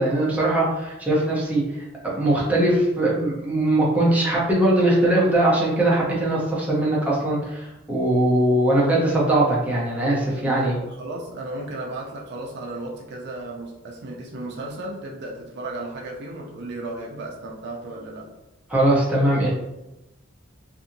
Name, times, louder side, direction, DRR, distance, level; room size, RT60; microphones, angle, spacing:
voice 1, 0.0-1.6 2.0-10.7 18.7-19.5, right 1 dB, 10° right, -6 dB, 0.6 m, -20 dB
voice 2, 10.4-18.3, right 2 dB, 60° right, -2 dB, 0.5 m, -34 dB
2.7 x 2.6 x 2.6 m, 0.97 s
head